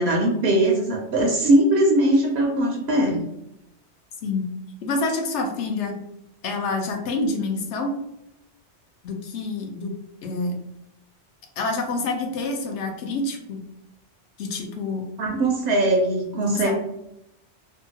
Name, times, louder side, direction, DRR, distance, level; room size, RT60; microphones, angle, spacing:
voice 1, 0.0-3.2 15.2-16.7, right 1 dB, 70° right, 0 dB, 0.8 m, -20 dB
voice 2, 4.8-5.9 6.4-8.0 9.0-9.9 10.2-10.6 11.6-13.6 14.4-15.1 16.5-16.7, left 3 dB, 75° left, 3 dB, 0.9 m, -27 dB
2.8 x 2.2 x 2.8 m, 0.81 s
omnidirectional pair, 1.2 m